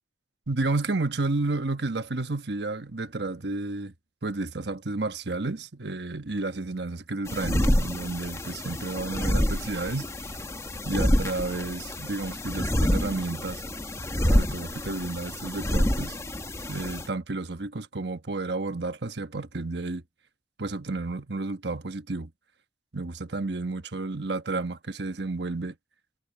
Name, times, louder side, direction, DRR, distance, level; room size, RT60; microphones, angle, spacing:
voice 1, 0.5-3.9 4.2-10.1 10.9-13.6 14.3-16.2 16.7-20.0 20.6-22.3 22.9-25.8, right 3 dB, 70° right, 1.2 m, -31 dB
sound 1, 7.3-17.1, left 1 dB, 15° left, 1.3 m, -27 dB
head